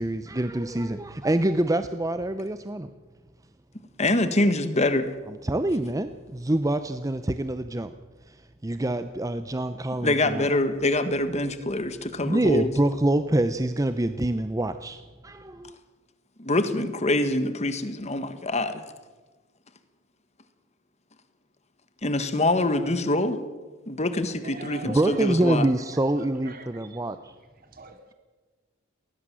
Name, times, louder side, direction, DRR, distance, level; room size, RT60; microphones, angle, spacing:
voice 1, 0.0-2.9 5.3-7.9 8.2-10.5 12.2-15.8 24.8-27.3, right 1 dB, 15° right, 11 dB, 0.6 m, -26 dB
voice 2, 4.0-5.1 10.0-12.7 16.4-18.8 22.0-23.4 23.9-25.7, left 2 dB, 35° left, 11 dB, 1.6 m, -25 dB
voice 3, 24.4-25.5 25.8-27.0 27.6-28.1, right 3 dB, 45° right, 7 dB, 2.6 m, -44 dB
20.0 x 19.0 x 7.5 m, 1.3 s
head